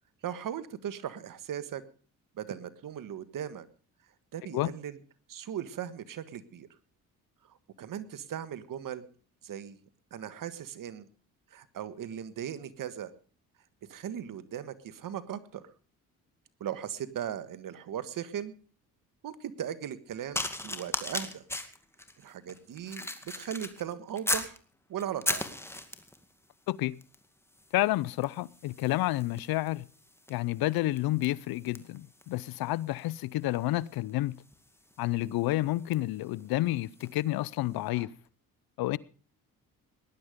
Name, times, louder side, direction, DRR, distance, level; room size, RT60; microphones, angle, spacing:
voice 1, 0.2-1.8 2.3-3.7 4.3-5.0 5.3-6.7 7.4-9.0 9.4-9.8 10.1-11.1 11.5-13.1 13.9-15.7 16.6-18.5 19.2-21.4 22.2-24.6 24.9-25.5, right 9 dB, 65° right, 1.6 m, -38 dB
sound 1, 20.3-24.6 25.0-26.2 27.0-27.3 27.5-37.2 37.9-38.1, left 1 dB, 5° left, 2.2 m, -38 dB
voice 2, 26.7-27.0 27.7-29.9 30.3-34.4 35.0-38.1 38.8-39.0, left 17 dB, 80° left, 0.7 m, -30 dB
19.0 x 11.0 x 5.1 m
cardioid pair, 80°, 36 cm